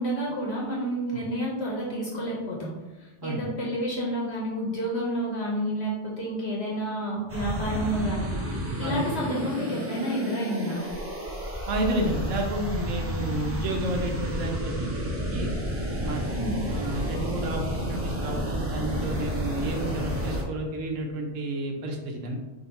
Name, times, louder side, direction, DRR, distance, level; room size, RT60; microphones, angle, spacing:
voice 1, 0.0-2.7 3.0-10.8 16.3-16.6, equal, 60° left, -4 dB, 1.0 m, -30 dB
sound 1, 7.3-20.4, equal, 20° right, 0.4 m, -31 dB
voice 2, 11.7-15.5 16.0-16.2 16.6-22.4, right 1 dB, 75° right, 2 dB, 1.0 m, -31 dB
3.8 x 2.5 x 4.0 m, 1.1 s
omnidirectional pair, 1.3 m